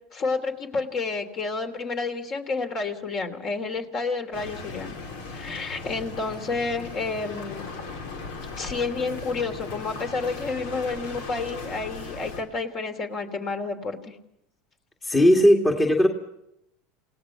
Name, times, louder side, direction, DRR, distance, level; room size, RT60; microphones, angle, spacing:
voice 1, 0.1-4.9 5.3-7.7 8.6-14.1, left 4 dB, 40° left, 7 dB, 3.2 m, -30 dB
sound 1, 4.3-12.4, left 3 dB, 85° left, 4.2 m, -37 dB
voice 2, 15.0-16.1, equal, 15° left, 2 dB, 2.0 m, -17 dB
28.5 x 17.5 x 5.9 m, 0.82 s
supercardioid pair, 120°, 0 cm